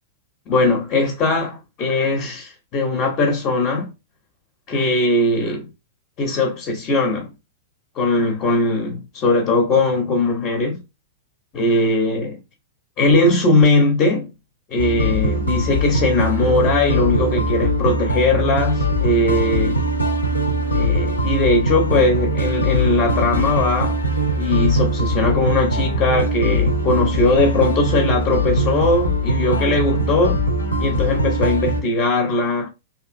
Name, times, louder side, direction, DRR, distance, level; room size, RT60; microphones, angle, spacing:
voice 1, 0.5-3.9 4.7-5.7 6.2-7.3 8.0-10.8 11.5-12.4 13.0-14.3 14.7-19.8 20.7-24.0 24.3-30.4 30.8-32.7, left 2 dB, 30° left, 0.6 m, -19 dB
sound 1, 14.8-31.8, equal, 80° left, 0.6 m, -21 dB
2.8 x 2.4 x 2.4 m
figure-of-eight pair, 100°, 0 cm